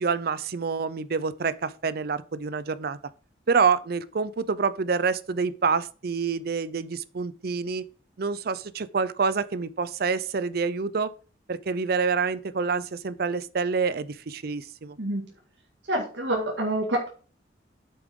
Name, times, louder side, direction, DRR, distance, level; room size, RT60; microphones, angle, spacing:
voice 1, 0.0-3.0 3.5-7.9 8.2-11.1 11.5-15.0, right 5 dB, 55° right, 0.5 m, -27 dB
voice 2, 15.0-15.3 15.9-17.1, right 1 dB, 75° right, 2.1 m, -27 dB
8.5 x 7.0 x 3.7 m
head